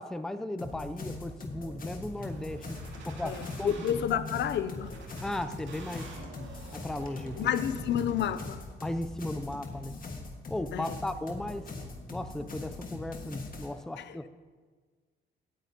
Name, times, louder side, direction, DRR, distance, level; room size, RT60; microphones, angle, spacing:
voice 1, 0.0-3.9 4.1-4.2 5.2-6.2 6.7-7.4 8.8-10.1 10.5-11.7 12.1-14.3, left 1 dB, 5° left, 10 dB, 0.4 m, -36 dB
sound 1, 0.6-13.7, left 3 dB, 45° left, 1.7 m, -41 dB
sound 2, 2.2-3.9 4.7-8.7 9.2-10.2, right 3 dB, 70° right, 2.4 m, -48 dB
voice 2, 3.2-4.9 7.4-8.6 10.7-11.0 14.0-14.2, left 9 dB, 65° left, 13 dB, 0.5 m, -30 dB
16.5 x 9.2 x 2.9 m, 1.5 s
cardioid pair, 90°, 20 cm